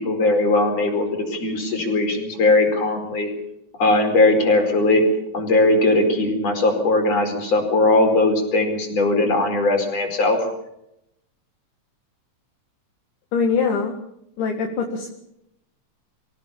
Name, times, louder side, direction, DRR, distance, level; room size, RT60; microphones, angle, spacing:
voice 1, 0.0-3.3 3.8-5.0 5.3-10.4, left 2 dB, 50° left, 4 dB, 5.8 m, -19 dB
voice 2, 13.3-13.9 14.4-15.1, left 5 dB, 70° left, 1 dB, 3.5 m, -22 dB
26.5 x 17.0 x 7.2 m, 0.81 s
omnidirectional pair, 3.9 m